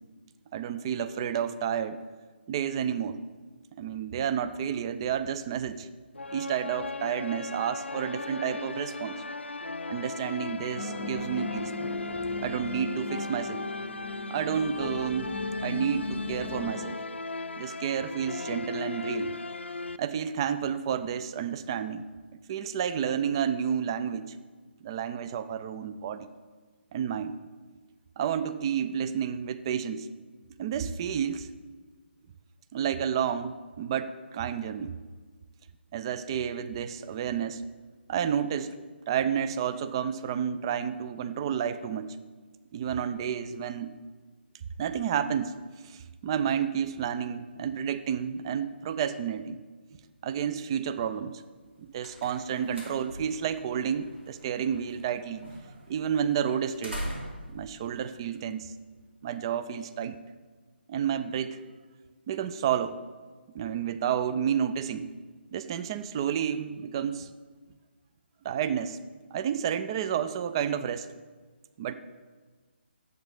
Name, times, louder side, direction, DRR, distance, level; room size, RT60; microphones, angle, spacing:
voice 1, 0.5-2.0 2.5-3.2 3.8-5.9 6.3-9.2 9.9-11.7 12.4-13.6 14.3-15.3 15.6-17.0 17.6-19.3 20.0-22.1 22.5-24.4 24.8-26.3 26.9-27.4 28.2-30.1 30.6-31.5 32.7-34.9 35.9-37.6 38.1-38.7 39.1-42.2 42.7-43.9 44.8-45.6 45.8-49.6 50.2-51.4 51.8-55.4 55.9-57.0 57.5-58.7 59.2-60.2 60.9-61.6 62.3-63.0 63.5-65.1 65.5-67.3 68.4-69.0 69.3-71.1 71.8-71.9, right 8 dB, 25° right, 12 dB, 0.4 m, -30 dB
sound 1, 6.1-20.0, left 3 dB, 85° left, 0.4 m, -37 dB
sound 2, 10.8-16.7, left 3 dB, 20° left, 1.0 m, -38 dB
sound 3, 51.5-59.0, equal, 80° right, 2.8 m, -43 dB
10.5 x 7.7 x 3.5 m, 1.4 s
figure-of-eight pair, 145°, 6 cm